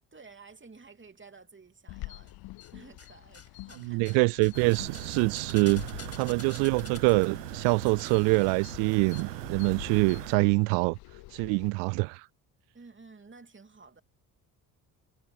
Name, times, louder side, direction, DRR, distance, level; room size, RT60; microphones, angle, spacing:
voice 1, 0.1-2.3 2.7-4.3 12.7-14.0, right 4 dB, 25° right, 3.1 m, -53 dB
sound 1, 1.9-11.7, left 20 dB, 55° left, 0.6 m, -46 dB
sound 2, 2.3-3.1 3.3-9.2 9.5-9.6, left 5 dB, 30° left, 6.9 m, -50 dB
voice 2, 3.9-5.8 6.1-11.0 11.3-12.3, right 32 dB, 70° right, 0.5 m, -25 dB
sound 3, 4.5-10.3, right 18 dB, 85° right, 1.0 m, -39 dB
hypercardioid pair, 50°, 46 cm